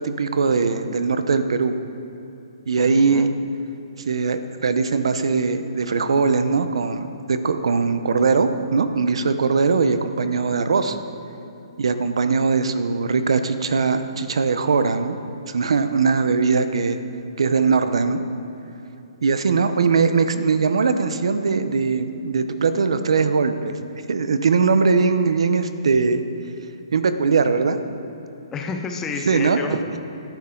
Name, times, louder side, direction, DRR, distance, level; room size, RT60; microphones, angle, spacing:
voice 1, 0.0-1.8 2.7-3.3 4.1-11.0 11.8-15.2 15.5-17.0 17.4-18.2 19.2-23.8 24.1-26.2 26.9-27.8 29.3-29.6, right 4 dB, 80° right, 10 dB, 0.8 m, -20 dB
voice 2, 2.8-3.3 10.5-10.8 28.5-30.0, left 4 dB, 15° left, 4 dB, 0.8 m, -31 dB
14.5 x 12.0 x 3.9 m, 3.0 s
hypercardioid pair, 150°, 3 cm